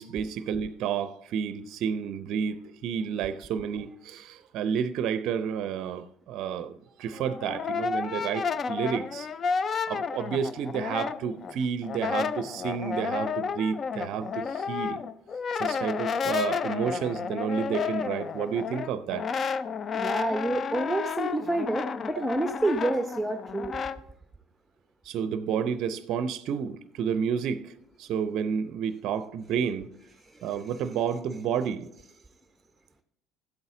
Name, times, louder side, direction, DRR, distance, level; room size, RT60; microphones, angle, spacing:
voice 1, 0.0-9.3 9.9-15.0 15.5-19.3 25.0-27.7 28.0-29.9 30.4-31.9, right 7 dB, 60° right, 0.5 m, -30 dB
Brass instrument, 7.1-11.5 11.8-24.0, left 6 dB, 40° left, 0.5 m, -31 dB
voice 2, 19.9-23.8 30.2-30.5, right 2 dB, 10° right, 0.7 m, -29 dB
13.5 x 8.0 x 3.8 m
hypercardioid pair, 60°, 0 cm